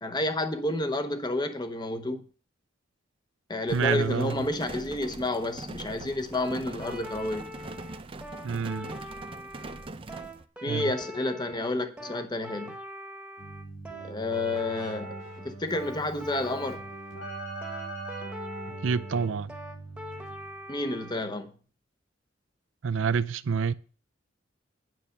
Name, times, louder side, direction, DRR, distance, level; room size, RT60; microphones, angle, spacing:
voice 1, 0.0-2.2 3.5-7.5 10.6-12.8 14.0-15.1 15.4-16.8 20.7-21.5, left 2 dB, 20° left, 0.8 m, -30 dB
sound 1, 3.7-10.5, right 2 dB, 30° right, 0.5 m, -42 dB
voice 2, 3.7-4.5 8.4-8.9 10.7-10.9 18.8-19.5 22.8-23.7, right 6 dB, 80° right, 0.5 m, -28 dB
sound 2, 6.3-21.2, equal, 5° right, 1.2 m, -43 dB
Keyboard (musical), 13.4-20.7, right 2 dB, 70° left, 5.0 m, -41 dB
9.4 x 5.6 x 6.4 m
head